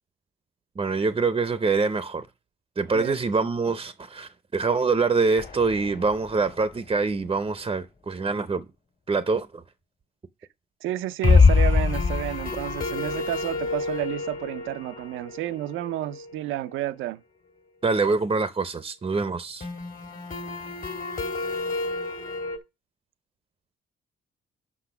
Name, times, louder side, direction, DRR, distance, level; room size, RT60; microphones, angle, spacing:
voice 1, 0.8-2.3 2.8-8.6 9.1-9.6 17.8-19.7, right 4 dB, 25° right, 0.6 m, -25 dB
voice 2, 2.9-3.5 10.8-17.2, right 13 dB, 90° right, 0.5 m, -31 dB
sound 1, 5.4-6.6 6.9-7.0 7.3-7.4 11.2-16.9 19.6-22.6, left 4 dB, 45° left, 1.7 m, -26 dB
6.1 x 5.7 x 5.8 m
cardioid pair, 90°, 20 cm